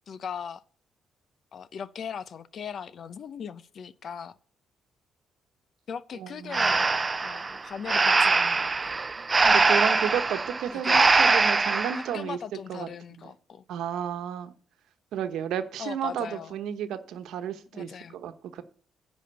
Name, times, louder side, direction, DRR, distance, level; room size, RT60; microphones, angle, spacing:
voice 1, 0.1-0.6 1.5-4.4 5.9-6.9 7.2-9.0 10.7-11.1 11.9-13.6 15.8-16.6 17.7-18.2, left 7 dB, 55° left, 0.6 m, -39 dB
voice 2, 6.2-6.8 9.4-12.4 12.7-12.9 13.7-14.5 15.1-18.6, right 9 dB, 80° right, 1.1 m, -32 dB
Breathing, 6.5-12.1, right 4 dB, 25° right, 0.5 m, -22 dB
10.0 x 5.2 x 6.8 m
cardioid pair, 90°, 0 cm